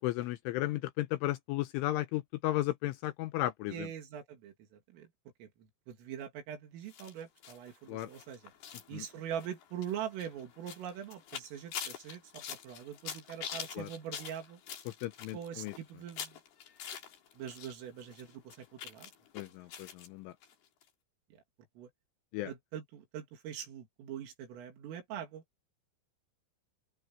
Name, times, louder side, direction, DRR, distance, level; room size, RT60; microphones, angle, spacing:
voice 1, 0.0-3.7 7.9-8.1 8.9-9.0 13.8-13.9 15.0-15.7 19.3-20.3 22.3-22.5, left 16 dB, 80° left, 3.2 m, -34 dB
voice 2, 3.7-5.1 5.4-5.5 5.9-8.5 8.9-14.6 15.3-16.4 17.4-19.1 21.3-21.4 21.8-21.9 22.5-25.4, right 9 dB, 80° right, 5.4 m, -43 dB
sound 1, 6.9-17.7 18.0-20.1 20.4-20.5 20.8-20.9, left 8 dB, 55° left, 4.3 m, -45 dB
open air
omnidirectional pair, 5.8 m